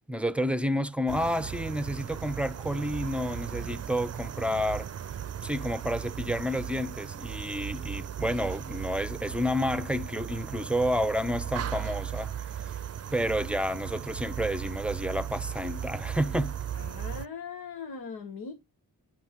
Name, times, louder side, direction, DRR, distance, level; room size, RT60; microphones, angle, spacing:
voice 1, 0.1-4.9 5.4-12.4 13.1-16.6, equal, 5° right, 0.6 m, -30 dB
sound 1, 1.1-17.3, right 9 dB, 45° right, 0.5 m, -37 dB
voice 2, 16.7-18.5, left 5 dB, 90° left, 1.1 m, -40 dB
9.2 x 5.4 x 3.0 m
cardioid pair, 55°, 36 cm